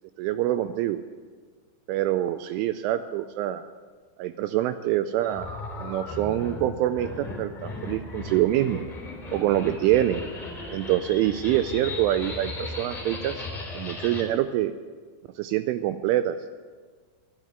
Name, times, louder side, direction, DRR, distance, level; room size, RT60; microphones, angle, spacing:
voice 1, 0.2-1.0 1.9-3.6 4.2-5.5 5.8-8.8 9.3-10.2 10.7-13.4 13.8-14.7 15.4-16.4, right 13 dB, 85° right, 11 dB, 2.9 m, -25 dB
sound 1, 5.2-14.2, left 2 dB, 10° left, 2.4 m, -36 dB
12.5 x 11.0 x 7.9 m, 1.5 s
omnidirectional pair, 5.9 m